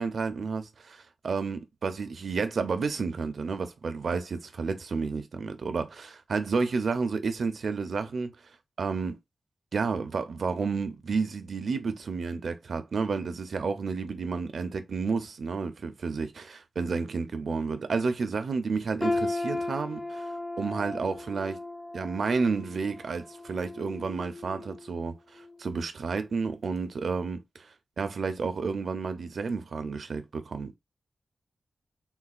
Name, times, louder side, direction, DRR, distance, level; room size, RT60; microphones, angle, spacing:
voice 1, 0.0-8.3 8.8-9.2 9.7-21.6 21.9-27.7 28.0-30.8, right 4 dB, 65° right, 0.5 m, -31 dB
sound 1, 19.0-25.0 25.4-25.6 26.3-26.4, left 2 dB, 20° left, 0.5 m, -35 dB
3.8 x 2.3 x 2.3 m
wide cardioid pair, 145°, 0 cm